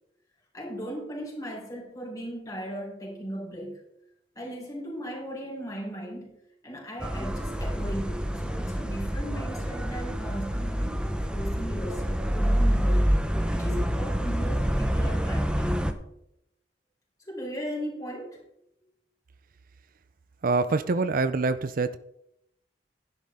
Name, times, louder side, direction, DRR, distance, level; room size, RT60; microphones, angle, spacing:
voice 1, 0.5-3.8 4.3-6.3 6.6-11.0 11.3-13.2 13.5-16.0 17.2-18.4, equal, 20° left, -1 dB, 4.1 m, -37 dB
sound 1, 7.0-15.9, equal, 5° right, 0.9 m, -27 dB
voice 2, 20.4-22.0, right 3 dB, 50° right, 12 dB, 0.5 m, -25 dB
11.5 x 10.5 x 3.6 m, 0.78 s
head